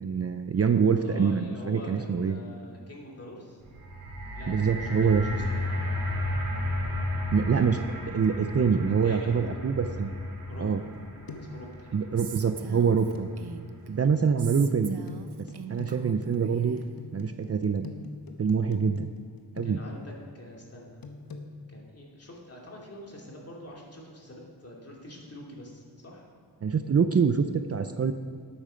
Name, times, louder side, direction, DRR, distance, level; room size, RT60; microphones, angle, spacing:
voice 1, 0.0-2.4 4.5-5.2 7.3-10.1 10.6-10.8 11.9-13.3 13.9-15.0 15.7-16.8 17.1-17.9 18.4-19.1 19.6-19.8 26.6-28.1, right 6 dB, 40° right, 8 dB, 0.5 m, -25 dB
voice 2, 1.0-3.6 4.3-5.6 9.0-9.5 10.5-10.7 11.3-12.0 19.6-21.0 21.7-26.3, left 1 dB, 35° left, -2 dB, 2.6 m, -45 dB
sound 1, 3.6-13.8 14.6-14.7, left 1 dB, 55° right, 2.8 m, -34 dB
sound 2, 10.5-11.0 11.3-11.7 13.2-13.3 15.1-20.1 21.0-21.5, left 3 dB, 60° left, 1.1 m, -43 dB
Female speech woman speaking, 12.2-13.9 14.4-16.9, right 7 dB, 70° right, 0.8 m, -42 dB
12.0 x 8.9 x 5.1 m, 2.1 s
wide cardioid pair, 90°, 40 cm